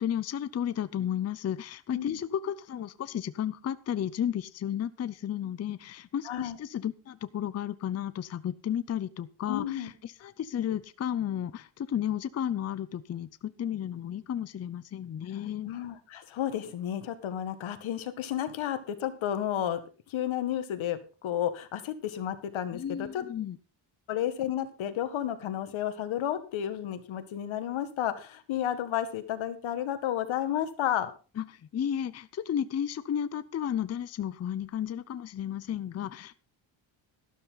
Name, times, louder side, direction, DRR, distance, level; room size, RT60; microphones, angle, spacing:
voice 1, 0.0-15.7 22.7-23.6 31.4-36.3, left 9 dB, 35° left, 14 dB, 0.5 m, -33 dB
voice 2, 6.3-6.6 9.5-9.9 15.6-19.8 20.1-23.2 24.1-31.1, left 10 dB, 80° left, 9 dB, 1.9 m, -32 dB
12.5 x 12.5 x 3.9 m, 0.35 s
cardioid pair, 155°, 46 cm